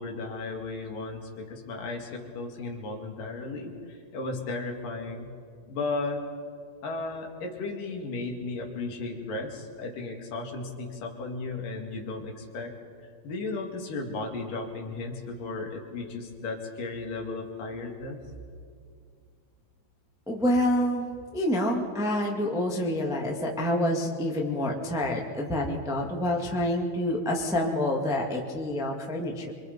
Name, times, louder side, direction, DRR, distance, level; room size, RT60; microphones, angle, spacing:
voice 1, 0.0-5.3 5.7-6.3 6.8-12.7 13.2-18.2, left 3 dB, 60° left, 1 dB, 3.6 m, -35 dB
voice 2, 20.3-21.1 21.3-29.5, left 1 dB, 5° right, -1 dB, 0.4 m, -27 dB
26.0 x 24.5 x 5.3 m, 2.2 s
omnidirectional pair, 4.6 m